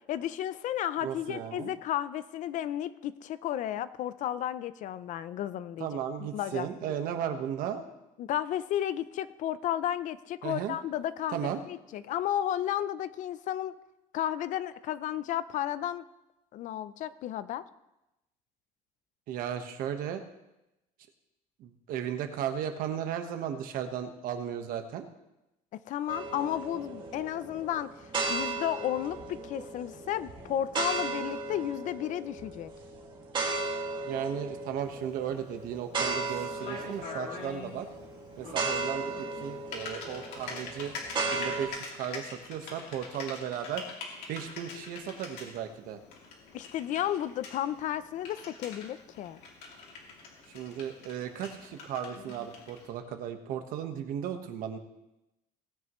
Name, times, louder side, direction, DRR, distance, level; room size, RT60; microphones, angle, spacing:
voice 1, 0.1-5.9 6.2-6.7 8.2-13.7 14.1-16.0 16.5-17.6 25.9-32.7 46.5-49.4, left 11 dB, 55° left, 15 dB, 0.6 m, -33 dB
voice 2, 1.0-1.7 5.8-7.8 10.4-10.7 11.3-11.6 19.3-20.2 21.6-25.1 34.0-37.9 38.4-40.9 41.3-43.8 44.3-46.0 50.5-54.8, right 9 dB, 65° right, 6 dB, 1.3 m, -35 dB
sound 1, 26.1-41.7, right 3 dB, 30° right, 2.2 m, -36 dB
Typing, 34.8-52.9, left 4 dB, 85° left, 2.8 m, -45 dB
18.5 x 9.5 x 3.1 m, 0.93 s
cardioid pair, 150°, 16 cm